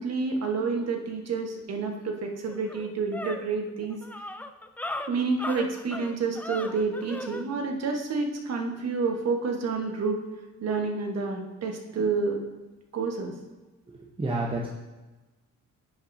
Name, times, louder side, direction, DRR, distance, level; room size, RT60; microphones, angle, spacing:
voice 1, 0.0-4.0 5.1-10.2 10.6-12.4 12.9-13.3, right 4 dB, 55° right, 3 dB, 1.3 m, -29 dB
sound 1, 2.0-2.1 2.5-7.5, left 1 dB, 5° left, 0.4 m, -37 dB
voice 2, 13.9-14.7, right 2 dB, 15° right, -2 dB, 0.9 m, -30 dB
10.0 x 5.8 x 2.7 m, 1.1 s
cardioid pair, 90°, 30 cm